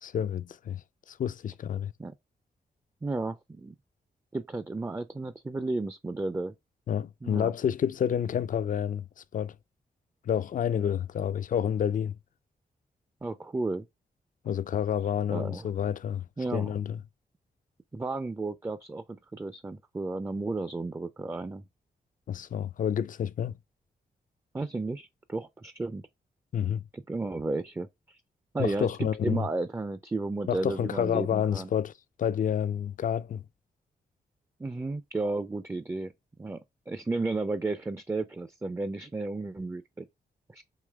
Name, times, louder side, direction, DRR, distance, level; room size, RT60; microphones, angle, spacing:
voice 1, 0.0-0.8 1.1-1.9 6.9-9.1 9.3-9.5 10.3-12.2 14.4-16.2 16.5-17.0 22.3-23.5 26.5-26.8 28.6-29.4 30.5-31.9 32.2-33.4, left 9 dB, 50° left, 0.4 m, -29 dB
voice 2, 3.0-3.7 4.3-6.5 7.2-7.5 13.2-13.9 15.3-15.7 16.4-16.7 17.9-21.6 24.5-26.0 26.9-28.2 28.5-31.7 34.6-36.1 36.4-36.6 36.9-40.1 40.5-40.6, right 3 dB, 15° right, 0.4 m, -33 dB
4.9 x 2.9 x 2.3 m
cardioid pair, 55°, 17 cm